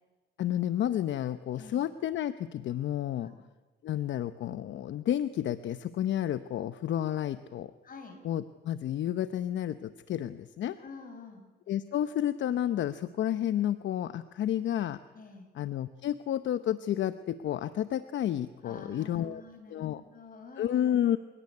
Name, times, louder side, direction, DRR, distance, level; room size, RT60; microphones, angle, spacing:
voice 1, 0.4-3.3 3.8-7.7 8.2-10.8 11.7-15.0 15.5-19.4 19.7-20.0 20.6-21.2, left 11 dB, 70° left, 12 dB, 0.9 m, -31 dB
voice 2, 1.6-1.9 3.2-3.4 7.8-8.2 10.8-11.4 15.1-15.5 18.6-20.8, left 4 dB, 45° left, 5 dB, 6.9 m, -48 dB
28.0 x 17.0 x 9.8 m, 1.2 s
cardioid pair, 90°, 20 cm